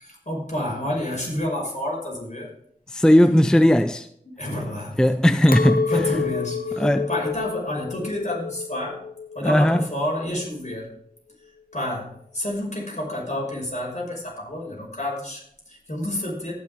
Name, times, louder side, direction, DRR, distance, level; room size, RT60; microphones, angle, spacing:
voice 1, 0.0-2.5 4.4-5.0 5.9-9.0 9.3-10.9 11.7-16.5, left 1 dB, 50° left, 5.5 m, -29 dB
voice 2, 2.9-4.1 5.0-5.9 6.8-7.1 9.4-9.9, equal, 5° left, 0.5 m, -17 dB
Chink clink, 5.5-10.9, left 5 dB, 65° left, 0.7 m, -29 dB
19.0 x 6.5 x 3.7 m
wide cardioid pair, 45°, 15 cm